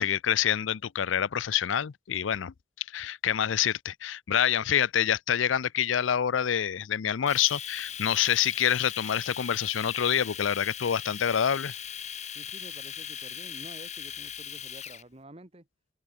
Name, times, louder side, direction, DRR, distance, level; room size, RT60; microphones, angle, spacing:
voice 1, 0.0-2.5 2.9-11.8, left 9 dB, 90° left, 0.5 m, -27 dB
Domestic sounds home sounds, 7.3-15.0, left 8 dB, 35° left, 1.3 m, -39 dB
voice 2, 12.3-15.7, right 1 dB, 30° right, 1.5 m, -49 dB
open air
head